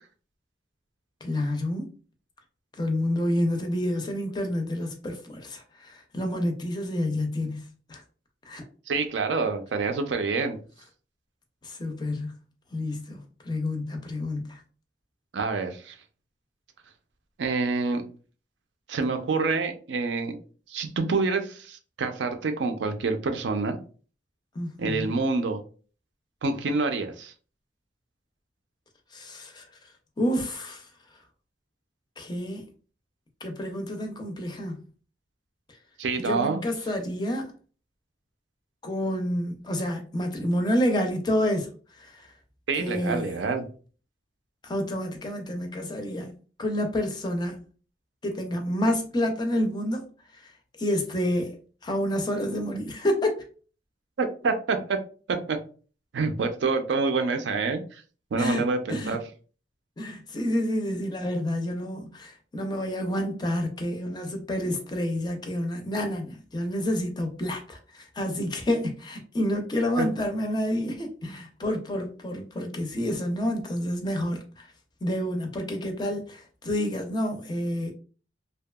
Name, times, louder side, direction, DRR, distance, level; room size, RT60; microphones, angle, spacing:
voice 1, 1.2-1.9 2.8-8.0 8.5-8.6 11.6-12.3 12.7-14.6 24.6-25.1 29.1-29.7 30.2-30.9 32.2-32.7 33.4-34.8 36.2-37.5 38.8-42.3 42.8-43.3 44.6-46.3 46.6-47.6 48.2-50.0 50.3-50.5 50.8-51.5 51.8-53.4 58.4-59.2 60.0-74.7 75.0-77.9, left 1 dB, 25° left, 0.4 m, -29 dB
voice 2, 8.9-10.6 15.3-16.0 17.4-18.0 18.9-20.4 20.7-23.8 24.8-25.6 26.4-27.3 36.0-36.6 42.7-43.6 54.2-55.0 55.3-55.6 56.1-58.0 58.3-59.2 70.0-70.1, right 4 dB, 70° right, 0.4 m, -27 dB
2.7 x 2.2 x 2.2 m
head